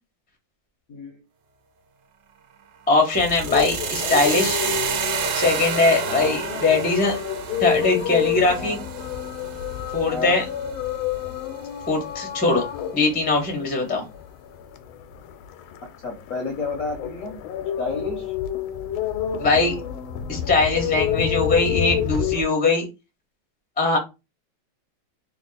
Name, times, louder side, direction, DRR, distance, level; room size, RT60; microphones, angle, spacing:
voice 1, 0.9-1.2 6.1-6.4 8.6-8.8 10.1-10.4 16.0-18.3, left 3 dB, 60° left, 2 dB, 0.9 m, -31 dB
voice 2, 2.9-4.6 5.3-7.2 7.6-8.8 9.9-10.4 11.9-12.6 12.9-14.1 19.4-19.8 20.3-22.8 23.8-24.0, left 3 dB, 10° left, 3 dB, 0.4 m, -21 dB
sound 1, 3.1-22.4, left 9 dB, 85° left, 1.4 m, -29 dB
sound 2, 3.1-11.1, right 6 dB, 70° right, 1.4 m, -30 dB
3.5 x 2.3 x 4.0 m, 0.26 s
omnidirectional pair, 2.2 m